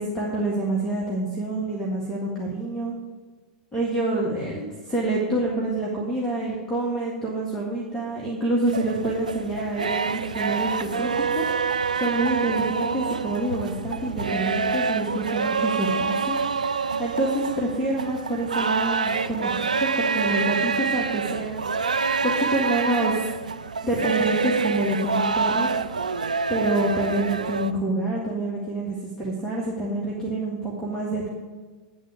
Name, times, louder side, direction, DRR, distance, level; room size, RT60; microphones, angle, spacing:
voice 1, 0.0-2.9 3.7-16.4 17.0-21.7 22.2-23.3 23.8-25.7 26.5-31.3, right 1 dB, 10° left, -5 dB, 1.8 m, -27 dB
sound 1, 8.7-27.7, right 5 dB, 85° right, 0.3 m, -26 dB
10.0 x 3.9 x 6.9 m, 1.4 s
hypercardioid pair, 95°, 4 cm